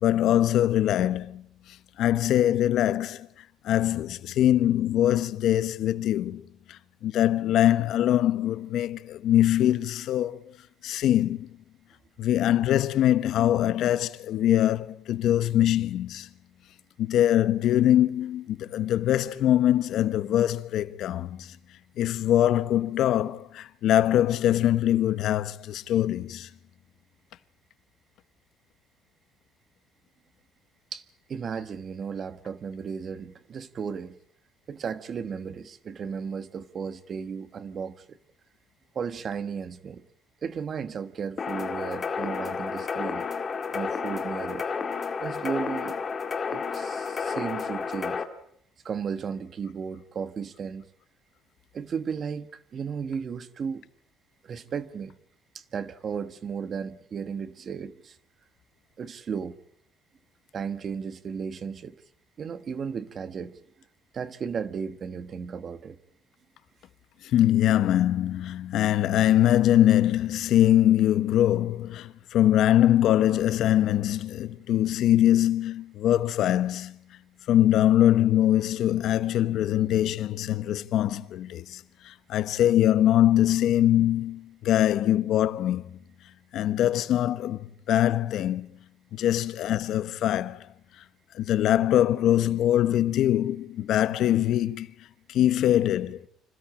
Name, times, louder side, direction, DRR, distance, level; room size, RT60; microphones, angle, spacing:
voice 1, 0.0-1.4 2.0-3.3 3.6-6.4 6.7-10.4 10.8-11.5 12.2-16.3 17.0-21.5 22.0-26.5 67.3-77.0 77.5-81.8 82.0-85.8 86.5-88.7 89.1-90.6 91.3-94.9 95.3-96.2, left 12 dB, 55° left, 1.1 m, -23 dB
voice 2, 31.3-34.2 34.7-38.2 38.9-40.1 40.4-43.3 43.7-44.6 45.2-46.0 46.5-48.2 48.8-50.9 51.7-53.9 54.4-55.1 55.5-58.2 59.0-59.6 60.5-61.9 62.4-63.6 64.1-66.0, right 6 dB, 30° right, 1.2 m, -34 dB
sound 1, 41.4-48.2, left 5 dB, 25° left, 2.0 m, -31 dB
26.5 x 16.5 x 8.8 m
cardioid pair, 175°, 0 cm